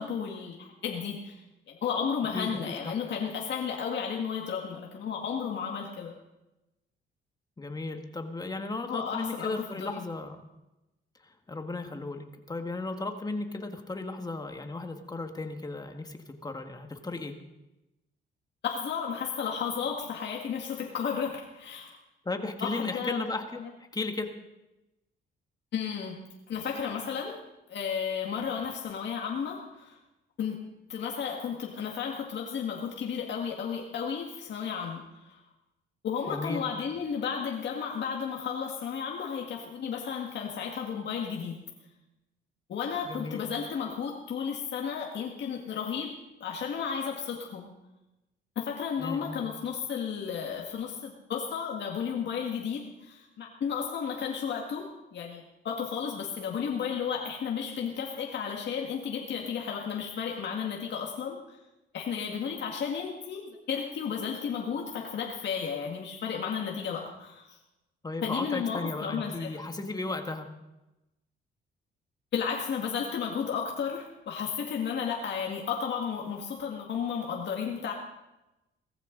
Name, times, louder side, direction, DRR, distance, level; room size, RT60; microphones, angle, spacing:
voice 1, 0.0-1.4 1.7-6.1 8.9-10.0 18.6-22.0 22.6-23.2 23.6-23.7 25.7-27.4 27.7-30.0 30.4-35.4 36.0-41.6 42.7-47.7 48.6-61.6 61.9-67.6 68.2-69.6 72.3-77.9, left 7 dB, 60° left, -1 dB, 2.0 m, -33 dB
voice 2, 2.3-2.9 7.6-10.5 11.2-17.4 22.2-23.6 23.9-24.3 36.3-36.6 43.0-43.4 49.0-49.4 68.0-70.5, left 3 dB, 20° left, 5 dB, 1.7 m, -35 dB
18.0 x 14.5 x 3.9 m, 0.97 s
cardioid pair, 90°, 20 cm